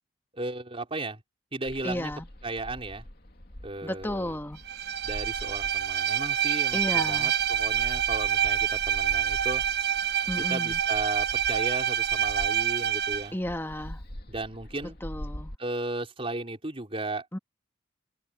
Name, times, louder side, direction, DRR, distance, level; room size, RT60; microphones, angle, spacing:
voice 1, 0.3-1.2 1.5-2.1 2.4-3.0 3.6-4.4 5.0-9.6 10.4-13.4 14.3-15.0 15.6-17.3, right 2 dB, 30° right, 4.9 m, -35 dB
sound 1, 1.6-15.5, equal, 55° left, 2.7 m, -44 dB
voice 2, 1.8-2.2 3.8-4.6 6.7-7.3 10.3-10.8 13.3-14.0 15.0-15.5 17.3-17.4, left 1 dB, 10° left, 1.7 m, -33 dB
Bowed string instrument, 4.7-13.3, right 9 dB, 60° right, 1.1 m, -27 dB
open air
head